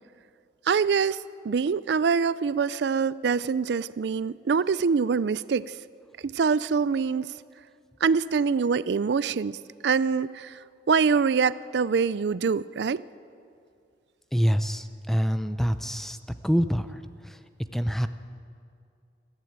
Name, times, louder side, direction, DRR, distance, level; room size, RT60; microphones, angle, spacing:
voice 1, 0.7-5.8 6.2-7.3 8.0-9.6 9.8-10.5 10.9-13.0, right 5 dB, 75° right, 18 dB, 0.4 m, -24 dB
voice 2, 14.3-16.2 16.4-16.9 17.7-18.1, equal, ahead, 10 dB, 0.6 m, -25 dB
21.5 x 15.0 x 8.9 m, 2.4 s
head